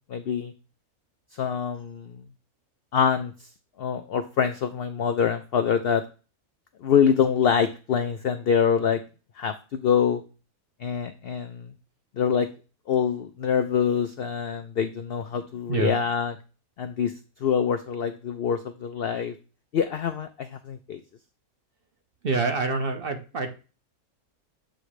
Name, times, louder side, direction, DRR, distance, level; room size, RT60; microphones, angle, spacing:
voice 1, 0.1-0.5 1.3-2.1 2.9-3.3 3.8-6.0 6.8-9.0 9.4-10.2 10.8-11.7 12.2-12.5 12.9-16.3 16.8-17.1 17.4-19.3 19.7-21.0, left 7 dB, 75° left, 8 dB, 0.5 m, -25 dB
voice 2, 22.2-23.5, right 3 dB, 45° right, 6 dB, 0.8 m, -26 dB
7.8 x 3.1 x 4.9 m, 0.33 s
omnidirectional pair, 1.5 m